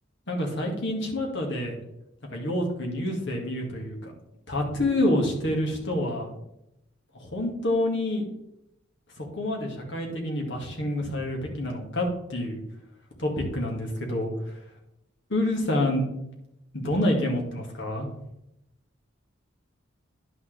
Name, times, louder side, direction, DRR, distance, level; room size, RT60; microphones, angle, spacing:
voice 1, 0.3-1.7 2.3-4.1 4.5-6.3 7.1-8.2 9.2-12.6 13.2-14.6 15.3-16.0 16.7-18.1, left 1 dB, 65° left, 1 dB, 2.1 m, -27 dB
10.0 x 6.4 x 3.4 m, 0.84 s
head